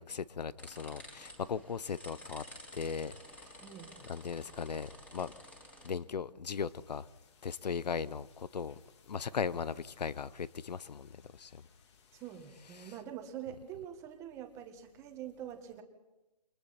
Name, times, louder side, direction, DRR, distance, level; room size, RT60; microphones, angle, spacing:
voice 1, 0.0-2.4 2.7-3.1 4.1-5.3 5.8-7.0 7.4-8.7 9.1-11.5 12.8-12.9, left 6 dB, 80° left, 0.9 m, -38 dB
sound 1, 0.6-5.9, left 1 dB, 5° left, 3.2 m, -52 dB
voice 2, 3.6-4.0 12.1-15.8, right 10 dB, 15° right, 1.7 m, -45 dB
sound 2, 6.5-12.9, left 6 dB, 40° left, 2.9 m, -67 dB
29.0 x 24.0 x 4.4 m
hypercardioid pair, 160°, 21 cm